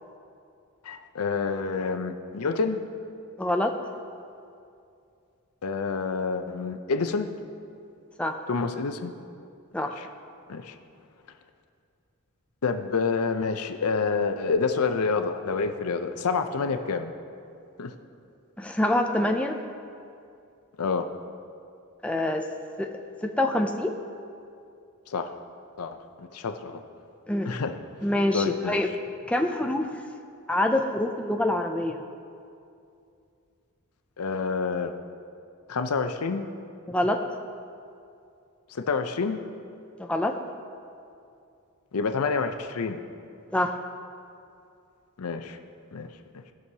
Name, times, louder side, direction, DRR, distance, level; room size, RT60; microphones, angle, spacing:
voice 1, 0.8-2.8 5.6-7.3 8.5-9.1 9.8-10.1 10.5-10.7 12.6-17.1 17.8-17.9 20.8-21.1 25.1-25.4 25.8-26.8 27.5-27.8 28.3-28.8 34.2-34.9 35.7-36.4 38.7-39.4 41.9-43.0 45.2-45.6 45.9-46.1, left 4 dB, 80° left, 7 dB, 0.6 m, -28 dB
voice 2, 3.4-3.7 8.2-8.4 9.7-9.9 18.6-19.6 22.0-22.5 22.8-23.9 27.3-27.5 28.0-28.9 29.3-30.0 30.5-32.0 36.9-37.2 40.0-40.3 43.5-43.8, left 1 dB, 5° left, 3 dB, 0.4 m, -25 dB
18.5 x 6.2 x 2.8 m, 2.5 s
head